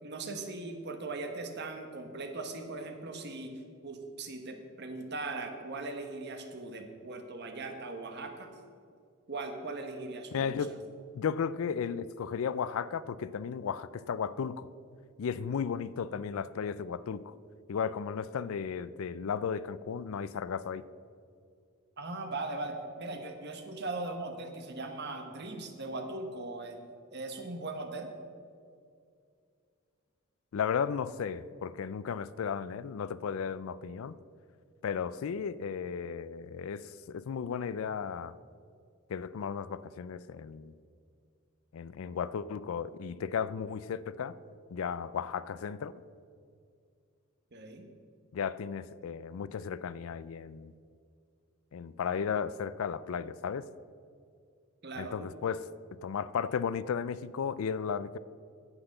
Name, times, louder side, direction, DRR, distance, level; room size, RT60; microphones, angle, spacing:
voice 1, 0.0-8.5 9.3-10.6 22.0-28.1 47.5-47.9 54.8-55.3, right 2 dB, 50° right, 5 dB, 1.2 m, -39 dB
voice 2, 10.3-10.7 11.1-14.7 15.2-17.3 17.7-20.8 30.5-34.2 34.8-38.3 39.1-40.7 41.7-44.4 44.7-45.9 48.3-50.7 51.7-53.7 55.0-55.6 56.0-58.2, left 6 dB, 70° left, 18 dB, 0.4 m, -34 dB
9.7 x 8.0 x 6.6 m, 2.3 s
head